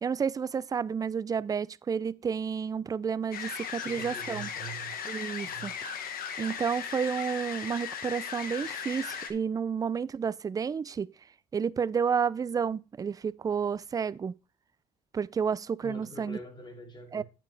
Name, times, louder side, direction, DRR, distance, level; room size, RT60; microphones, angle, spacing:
voice 1, 0.0-4.5 5.1-5.7 6.4-11.1 11.5-14.3 15.1-16.4 17.1-17.2, right 6 dB, 20° right, 0.3 m, -31 dB
sound 1, 3.3-9.3, left 7 dB, 60° left, 1.3 m, -37 dB
voice 2, 3.7-4.9 5.3-5.7 15.8-17.2, right 1 dB, 25° left, 2.6 m, -44 dB
9.1 x 7.0 x 3.3 m
cardioid pair, 110°, 17 cm